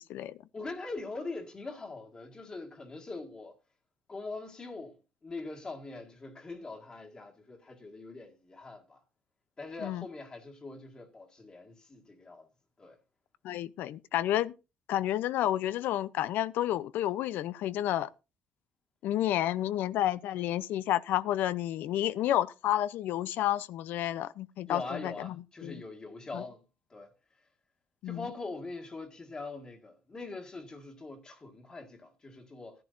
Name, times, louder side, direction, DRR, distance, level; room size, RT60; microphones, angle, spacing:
voice 1, 0.5-3.5 4.1-5.0 5.2-9.0 9.6-12.5 12.8-13.0 24.7-26.6 26.9-27.1 28.1-32.8, left 3 dB, 25° left, 1.8 m, -42 dB
voice 2, 13.4-14.5 14.9-18.1 19.0-25.3 25.6-25.8 26.3-26.4 28.0-28.3, left 13 dB, 75° left, 0.6 m, -30 dB
16.0 x 10.5 x 2.6 m
cardioid pair, 140°, 3 cm